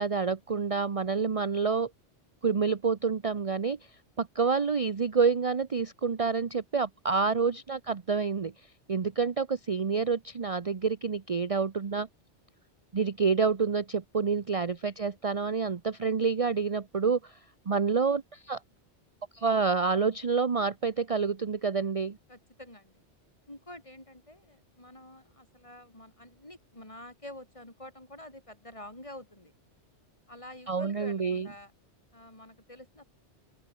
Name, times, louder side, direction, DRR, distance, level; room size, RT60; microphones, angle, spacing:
voice 1, 0.0-1.9 2.4-3.8 4.2-8.5 8.9-12.1 12.9-17.4 17.7-18.6 19.3-22.2 30.7-31.5, right 5 dB, 35° right, 0.8 m, -28 dB
voice 2, 22.3-23.0 23.5-29.5 30.3-31.7 32.1-33.0, left 1 dB, 30° left, 4.5 m, -48 dB
open air
omnidirectional pair, 1.2 m